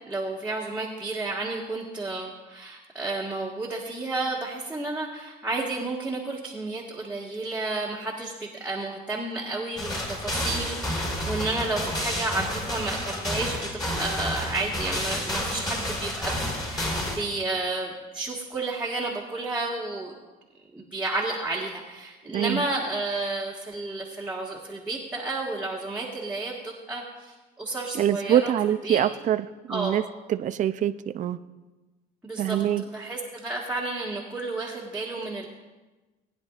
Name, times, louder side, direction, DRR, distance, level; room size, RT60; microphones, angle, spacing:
voice 1, 0.1-16.4 16.7-20.1 20.7-28.5 28.8-29.0 29.7-30.0 32.2-32.6 32.9-35.5, right 2 dB, 10° right, -5 dB, 1.7 m, -31 dB
sound 1, 9.8-17.2, left 1 dB, 25° left, 4.3 m, -30 dB
voice 2, 22.3-22.6 27.9-30.0 30.3-31.4 32.4-32.8, right 10 dB, 50° right, 11 dB, 0.5 m, -24 dB
20.0 x 10.0 x 2.5 m, 1.2 s
cardioid pair, 110°, 17 cm